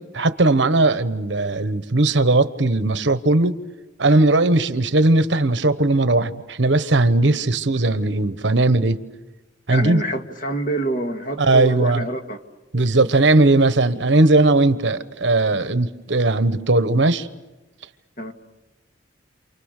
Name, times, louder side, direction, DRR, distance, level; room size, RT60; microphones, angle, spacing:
voice 1, 0.0-3.6 4.0-9.0 9.7-10.0 11.4-12.1 12.7-17.3, right 2 dB, 70° right, 1.2 m, -18 dB
voice 2, 9.7-12.4 18.2-18.3, right 1 dB, 45° left, 1.9 m, -26 dB
29.0 x 28.0 x 6.7 m
head